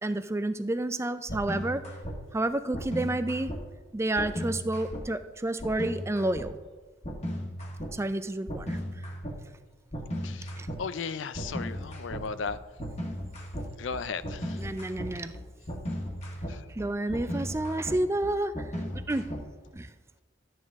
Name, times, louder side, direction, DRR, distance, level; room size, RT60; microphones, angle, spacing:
voice 1, 0.0-1.8 2.3-3.5 3.9-6.5 7.9-8.8 10.6-10.7 14.6-15.3 16.7-18.5 19.1-19.3 19.7-19.9, right 1 dB, 15° right, 11 dB, 0.4 m, -30 dB
sound 1, 1.3-2.1 2.7-3.6 4.2-5.0 5.6-6.5 7.0-7.9 8.5-9.4 9.9-10.8 11.3-19.7, equal, 35° left, 1.6 m, -36 dB
voice 2, 10.8-12.6 13.8-14.6 15.1-15.2 16.5-16.7, left 5 dB, 75° left, 14 dB, 0.5 m, -36 dB
13.0 x 9.3 x 3.6 m, 1.3 s
head